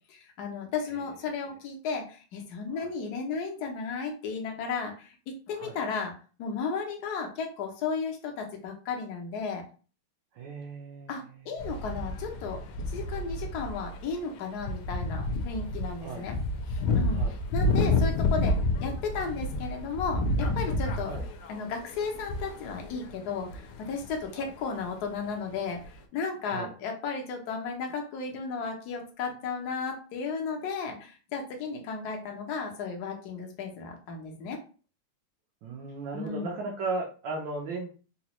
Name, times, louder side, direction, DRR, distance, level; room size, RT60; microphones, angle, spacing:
voice 1, 0.1-9.6 11.1-12.6 12.9-16.4 16.7-17.2 17.5-21.1 21.5-34.6 36.1-36.5, left 5 dB, 65° left, 2 dB, 1.1 m, -34 dB
voice 2, 10.3-11.8 16.0-16.2 17.1-17.4 21.0-21.2 24.3-24.5 26.4-26.7 35.6-37.9, right 3 dB, 70° right, -1 dB, 1.2 m, -37 dB
sound 1, 11.6-14.1 14.4-24.4 24.8-24.9 25.8-25.9, left 2 dB, 80° left, 1.4 m, -30 dB
4.0 x 2.3 x 2.9 m, 0.37 s
omnidirectional pair, 2.3 m